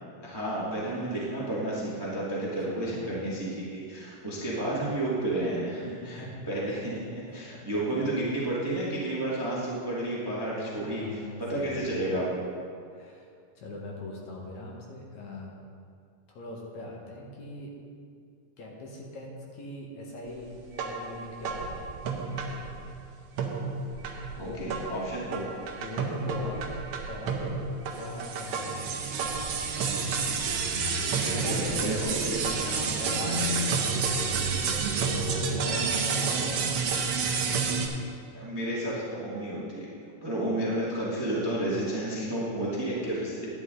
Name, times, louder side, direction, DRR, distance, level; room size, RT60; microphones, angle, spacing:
voice 1, 0.2-12.5 24.4-25.4 31.2-32.0 32.2-32.3 38.3-39.9 40.2-43.5, right 1 dB, 10° right, -6 dB, 1.1 m, -31 dB
voice 2, 2.4-3.2 4.2-4.6 6.1-6.4 7.3-7.4 7.9-8.1 10.7-12.2 12.9-13.2 13.6-15.5 16.3-17.7 18.6-22.0 24.4-24.8 25.8-27.6 27.9-28.7 31.3-32.2 32.6-33.7 34.0-34.5 35.0-37.0, left 2 dB, 65° left, -2 dB, 2.5 m, -40 dB
sound 1, 20.7-23.0 23.4-37.9, right 5 dB, 75° right, 1.3 m, -30 dB
11.0 x 10.0 x 3.8 m, 2.3 s
omnidirectional pair, 3.7 m